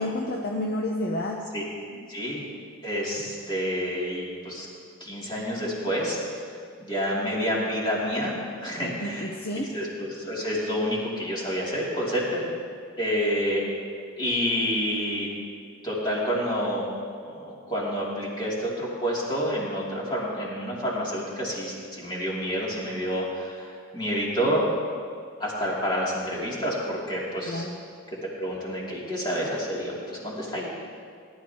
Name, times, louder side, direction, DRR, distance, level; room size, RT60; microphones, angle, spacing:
voice 1, 0.0-1.4 1.9-2.1 8.8-9.7 27.5-27.8, left 1 dB, 45° left, 0 dB, 0.8 m, -30 dB
voice 2, 2.1-2.4 2.8-4.7 5.0-6.2 6.8-12.4 13.0-13.7 14.2-15.3 15.8-16.9 17.2-24.7 25.4-27.6 28.2-30.7, equal, 20° left, -6 dB, 2.7 m, -28 dB
19.5 x 11.5 x 2.9 m, 2.1 s
head